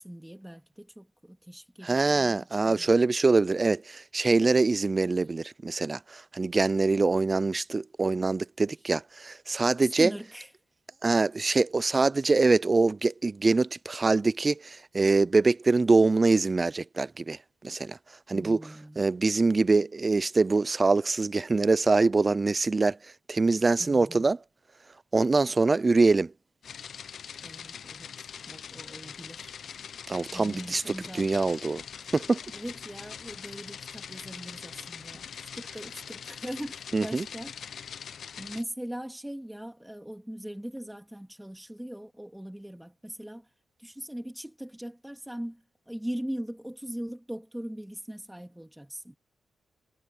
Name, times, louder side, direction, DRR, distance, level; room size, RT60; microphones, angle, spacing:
voice 1, 0.0-3.0 9.8-10.5 18.3-19.0 23.8-24.3 27.4-29.5 30.3-31.3 32.5-37.5 38.4-43.5 43.8-49.2, equal, 5° right, 2.8 m, -40 dB
voice 2, 1.8-10.1 11.0-17.4 17.6-18.0 18.3-18.6 19.0-23.0 23.3-24.4 25.1-26.3 30.1-30.8 31.1-31.8 32.1-32.4 36.9-37.2, right 3 dB, 25° right, 0.4 m, -24 dB
sound 1, 26.6-38.6, left 7 dB, 65° left, 0.9 m, -42 dB
cardioid pair, 115°, 0 cm